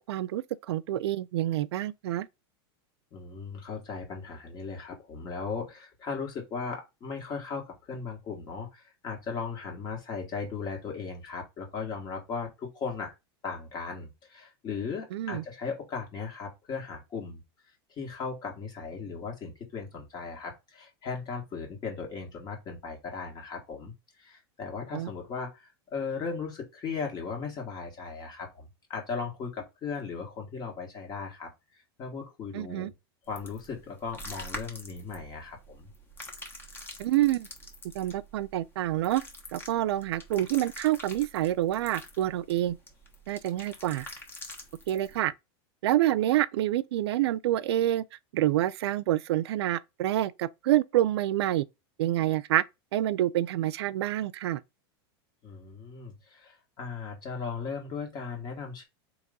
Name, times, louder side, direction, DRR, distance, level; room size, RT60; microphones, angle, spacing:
voice 1, 0.0-2.3 15.1-15.4 24.9-25.1 32.5-32.9 37.0-37.5 37.9-39.2 39.5-42.8 43.3-44.1 44.9-45.3 45.8-48.0 48.3-51.6 52.0-52.6 52.9-54.6, right 14 dB, 85° right, 0.4 m, -27 dB
voice 2, 3.1-13.1 13.4-17.4 17.9-32.9 33.3-35.9 55.4-58.8, left 5 dB, 30° left, 1.7 m, -37 dB
sound 1, 33.3-45.2, left 1 dB, 15° left, 1.1 m, -46 dB
4.0 x 2.9 x 3.8 m
supercardioid pair, 140°, 13 cm